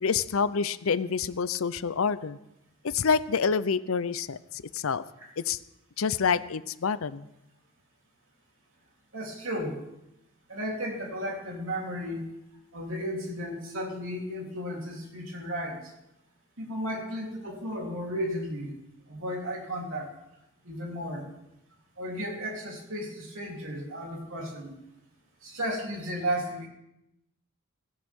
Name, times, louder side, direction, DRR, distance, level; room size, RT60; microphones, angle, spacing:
voice 1, 0.0-2.4 2.8-4.4 4.7-5.0 5.4-5.6 6.0-7.3, left 6 dB, 70° left, 16 dB, 0.6 m, -27 dB
voice 2, 9.1-9.8 10.5-12.2 12.7-15.9 16.6-18.7 19.1-20.1 20.6-21.3 22.0-24.8 25.4-26.7, equal, 65° right, -1 dB, 3.5 m, -34 dB
17.0 x 16.5 x 3.7 m, 0.85 s
head